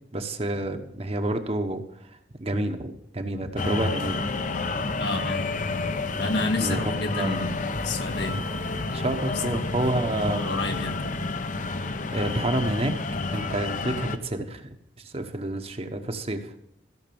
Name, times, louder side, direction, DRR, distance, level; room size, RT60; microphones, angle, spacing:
voice 1, 0.1-1.8 2.4-4.3 6.6-6.9 7.2-7.5 8.9-10.4 12.1-12.9 13.3-14.7 15.0-16.5, right 1 dB, 35° right, 6 dB, 1.0 m, -29 dB
sound 1, 3.6-14.2, left 3 dB, 45° left, 0.8 m, -29 dB
voice 2, 5.0-5.6 6.2-7.6 7.8-8.4 9.4-9.6 10.3-11.0, left 2 dB, 70° left, 4 dB, 1.7 m, -30 dB
15.0 x 6.6 x 7.0 m, 0.79 s
head